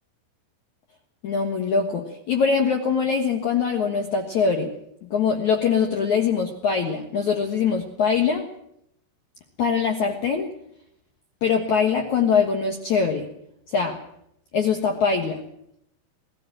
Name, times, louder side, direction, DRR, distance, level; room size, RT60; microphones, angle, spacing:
voice 1, 1.2-4.7 5.0-8.5 9.6-10.5 11.4-13.3 13.7-14.0 14.5-15.4, left 6 dB, 70° left, 4 dB, 1.8 m, -23 dB
20.5 x 15.0 x 9.0 m, 0.76 s
omnidirectional pair, 5.7 m